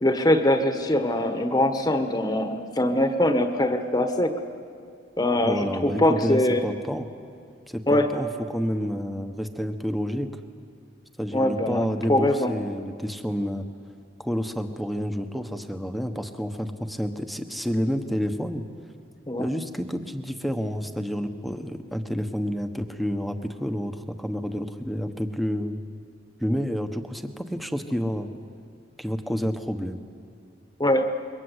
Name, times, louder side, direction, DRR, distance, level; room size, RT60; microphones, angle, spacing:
voice 1, 0.0-4.3 5.2-6.6 7.9-8.1 11.3-12.5 19.3-19.5 30.8-31.1, left 1 dB, 20° left, 6 dB, 1.3 m, -22 dB
voice 2, 5.5-7.1 7.7-10.3 11.2-13.7 14.2-18.6 19.4-25.8 26.4-28.3 29.0-30.0, equal, ahead, 6 dB, 1.2 m, -29 dB
27.0 x 23.0 x 8.2 m, 2.4 s
head